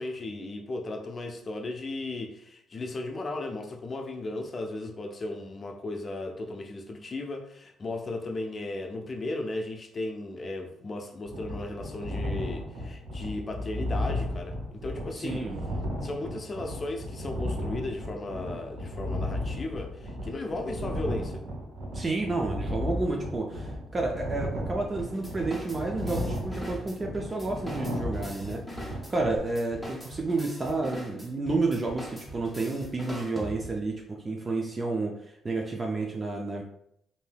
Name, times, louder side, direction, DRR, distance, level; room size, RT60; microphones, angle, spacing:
voice 1, 0.0-15.4 16.0-21.4, left 2 dB, 40° left, 3 dB, 0.5 m, -36 dB
sound 1, 11.2-29.4, left 1 dB, 85° right, 0.8 m, -34 dB
voice 2, 15.2-15.6 21.9-28.6 28.9-35.2 35.4-36.6, right 3 dB, 30° right, 0 dB, 0.4 m, -30 dB
sound 2, 25.0-33.9, equal, 5° left, 0.8 m, -43 dB
3.2 x 2.7 x 2.2 m, 0.73 s
cardioid pair, 90°, 0 cm